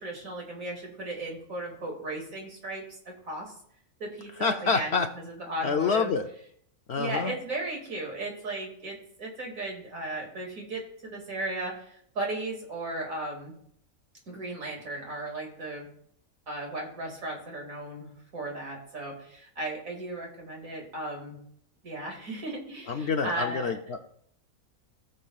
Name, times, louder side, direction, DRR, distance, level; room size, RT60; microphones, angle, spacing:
voice 1, 0.0-2.8 3.3-3.5 4.0-6.1 7.0-11.7 12.2-13.5 14.3-15.8 16.5-18.1 18.3-19.1 19.6-21.4 21.8-23.7, right 2 dB, 70° right, 0 dB, 2.7 m, -35 dB
voice 2, 4.4-5.1 5.6-6.3 6.9-7.3 22.9-24.1, left 5 dB, 60° left, 6 dB, 0.7 m, -27 dB
17.5 x 6.6 x 2.4 m, 0.67 s
omnidirectional pair, 1.5 m